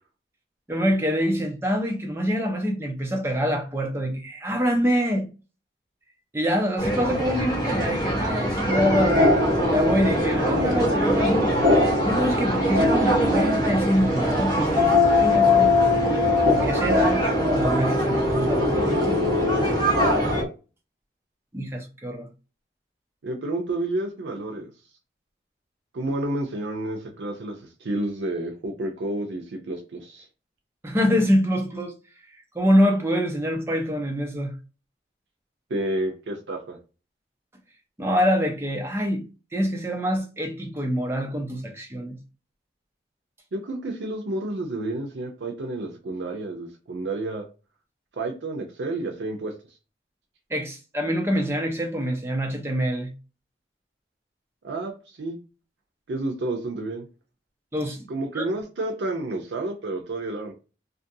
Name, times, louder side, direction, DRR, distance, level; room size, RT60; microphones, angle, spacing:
voice 1, 0.7-5.3 6.3-9.4 9.7-11.5 12.0-15.7 16.4-19.2 21.5-22.3 30.8-31.9 32.5-34.5 38.0-42.2 50.5-53.1 57.7-58.1 58.3-58.4, equal, 15° right, 0.5 m, -25 dB
sound 1, 6.8-20.4, right 1 dB, 25° left, 0.8 m, -25 dB
sound 2, 8.7-20.5, left 3 dB, 60° right, 0.9 m, -23 dB
voice 2, 23.2-24.7 25.9-30.3 35.7-36.8 43.5-47.4 48.1-49.5 54.6-55.4 56.1-57.1 58.1-60.5, right 2 dB, 85° right, 0.5 m, -30 dB
2.5 x 2.2 x 2.6 m
head